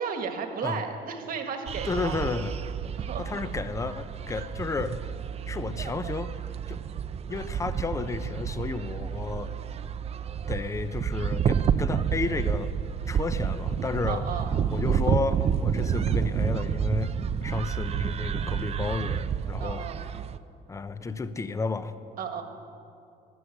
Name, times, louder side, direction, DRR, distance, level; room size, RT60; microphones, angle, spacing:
voice 1, 0.0-2.2 3.0-3.4 4.4-4.5 14.1-14.5 19.6-20.1 22.2-22.4, right 6 dB, 60° right, 6 dB, 1.6 m, -34 dB
sound 1, 1.7-20.4, right 8 dB, 40° right, 0.5 m, -29 dB
voice 2, 1.9-2.5 3.2-5.0 5.5-6.3 6.7-6.8 7.3-9.5 10.5-12.7 13.1-14.2 14.7-17.1 17.4-19.9 20.7-21.9, left 4 dB, 20° left, 11 dB, 0.7 m, -32 dB
12.5 x 11.0 x 8.0 m, 2.5 s
cardioid pair, 110°, 17 cm